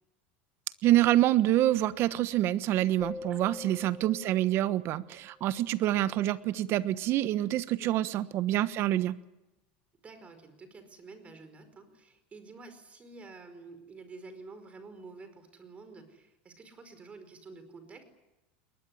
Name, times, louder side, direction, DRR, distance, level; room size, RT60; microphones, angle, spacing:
voice 1, 0.8-9.1, right 14 dB, 50° right, 14 dB, 1.2 m, -26 dB
sound 1, 3.0-5.6, left 3 dB, 15° left, 0.9 m, -45 dB
voice 2, 3.3-3.9 7.8-8.0 10.0-18.0, right 3 dB, 25° right, 9 dB, 5.0 m, -50 dB
21.5 x 20.5 x 10.0 m, 0.96 s
supercardioid pair, 115°, 5 cm